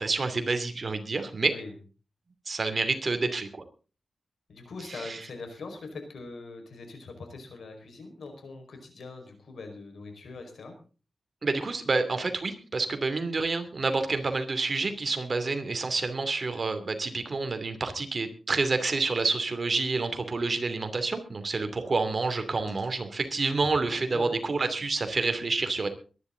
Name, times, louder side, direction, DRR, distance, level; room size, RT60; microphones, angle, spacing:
voice 1, 0.0-1.6 2.5-3.6 4.8-5.3 11.4-25.9, right 3 dB, 45° right, 8 dB, 2.7 m, -28 dB
voice 2, 4.5-10.7 24.1-24.3, left 3 dB, 80° left, 5 dB, 5.2 m, -42 dB
22.5 x 11.0 x 3.9 m, 0.36 s
wide cardioid pair, 85°, 0 cm